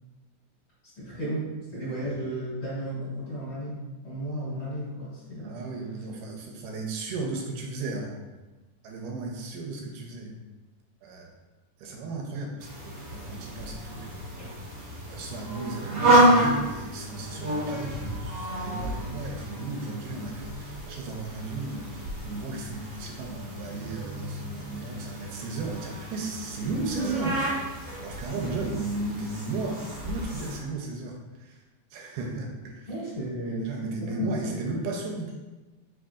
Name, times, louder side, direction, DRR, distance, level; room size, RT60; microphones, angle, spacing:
voice 1, 1.0-5.6 14.4-14.5 32.9-34.8, equal, 45° left, -10 dB, 2.0 m, -34 dB
voice 2, 5.4-8.2 8.8-10.4 11.0-11.3 11.8-14.4 15.1-21.9 22.2-31.6 31.9-32.9 33.5-35.3, right 3 dB, 85° right, 0 dB, 2.2 m, -35 dB
sound 1, 12.6-30.6, right 1 dB, 50° right, 1.4 m, -29 dB
4.9 x 3.8 x 2.4 m, 1.2 s
omnidirectional pair, 3.7 m